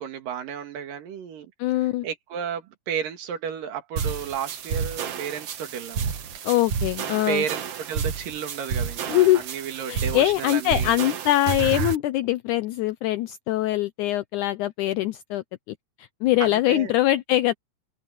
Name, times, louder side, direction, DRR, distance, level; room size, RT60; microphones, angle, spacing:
voice 1, 0.0-1.5 2.0-6.1 7.3-11.0 16.4-16.9, right 8 dB, 80° right, 3.6 m, -32 dB
voice 2, 1.6-2.1 6.4-7.4 9.1-9.4 9.9-17.5, left 15 dB, 75° left, 2.0 m, -23 dB
sound 1, 4.0-12.0, right 6 dB, 55° right, 2.1 m, -30 dB
omnidirectional pair, 3.8 m